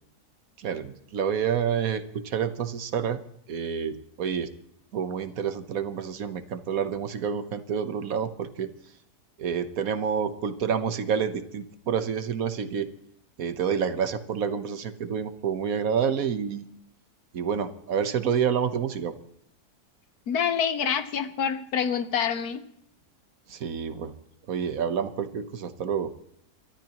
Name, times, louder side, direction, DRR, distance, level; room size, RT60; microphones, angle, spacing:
voice 1, 0.6-3.2 3.5-4.5 4.9-8.7 9.4-12.9 13.4-16.7 17.3-19.1 23.5-24.1 24.5-26.1, right 7 dB, 60° right, 10 dB, 1.4 m, -28 dB
voice 2, 20.3-22.6, left 7 dB, 65° left, 10 dB, 1.5 m, -26 dB
29.0 x 13.5 x 3.0 m, 0.71 s
omnidirectional pair, 1.8 m